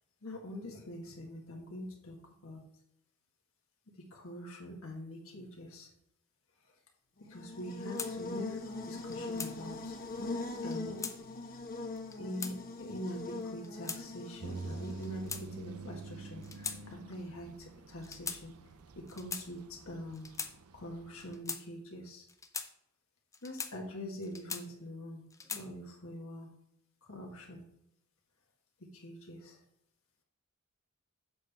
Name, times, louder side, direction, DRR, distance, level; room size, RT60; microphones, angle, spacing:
voice 1, 0.2-2.2 2.4-2.6 4.0-5.9 7.3-9.9 10.6-11.0 12.2-18.5 19.1-20.3 20.7-22.2 23.4-25.2 25.5-26.5 27.1-27.6 28.9-29.6, equal, 70° left, 0 dB, 1.7 m, -44 dB
Buzz, 7.2-15.4, left 2 dB, 45° left, 1.1 m, -41 dB
sound 1, 8.0-8.1 9.0-9.5 10.6-11.2 11.9-12.6 13.4-14.0 14.9-15.8 16.4-16.8 17.1-17.3 18.0-18.4 19.1-19.5 20.1-20.5 21.2-21.6 22.3-22.7 23.3-23.7 24.2-24.9 25.3-25.7, left 5 dB, 15° left, 0.6 m, -40 dB
sound 2, 14.4-21.4, right 3 dB, 90° right, 0.6 m, -47 dB
7.9 x 6.5 x 3.5 m, 0.78 s
head